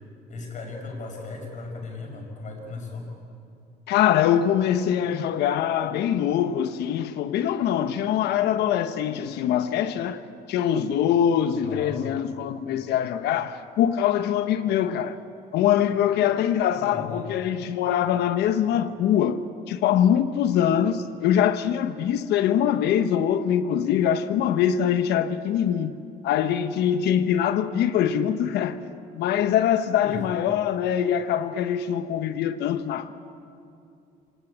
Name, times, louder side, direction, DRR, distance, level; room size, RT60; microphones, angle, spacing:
voice 1, 0.3-3.1 11.6-12.0 16.7-17.3 30.0-30.2, left 3 dB, 45° left, 6.3 m, -36 dB
voice 2, 3.9-10.2 10.5-15.2 15.5-19.4 19.7-26.0 26.2-28.9 29.2-33.1, left 9 dB, 80° left, 1.2 m, -23 dB
26.5 x 18.0 x 8.7 m
cardioid pair, 110°, 17 cm